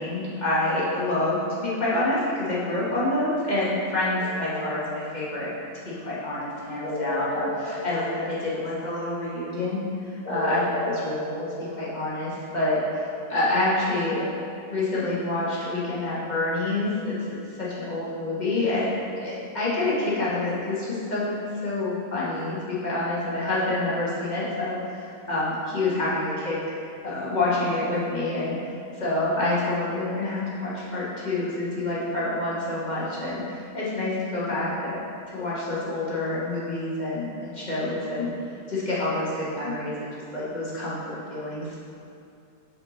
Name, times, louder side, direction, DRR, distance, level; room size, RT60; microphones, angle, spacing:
voice 1, 0.0-5.5 5.8-9.8 10.1-14.3 14.7-21.3 21.6-26.6 27.0-28.6 29.0-35.0 35.3-38.3 38.7-41.8, left 2 dB, 30° left, -8 dB, 1.4 m, -27 dB
sound 1, 4.2-5.5 6.8-9.0 10.3-12.4, left 2 dB, 90° left, 1.8 m, -33 dB
8.0 x 4.3 x 3.0 m, 2.5 s
omnidirectional pair, 1.5 m